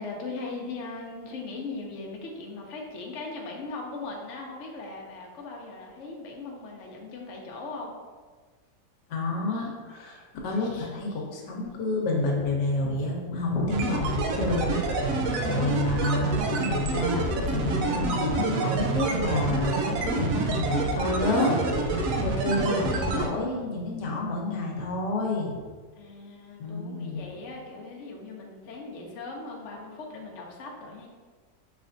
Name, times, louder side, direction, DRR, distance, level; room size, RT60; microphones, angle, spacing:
voice 1, 0.0-7.9 26.0-31.1, left 3 dB, 55° left, -1 dB, 0.9 m, -39 dB
voice 2, 9.1-15.0 15.5-25.6 26.6-27.2, left 2 dB, 85° left, -1 dB, 1.4 m, -29 dB
sound 1, 13.7-23.3, right 2 dB, 70° right, 0.8 m, -27 dB
6.0 x 3.3 x 2.6 m, 1.5 s
omnidirectional pair, 1.8 m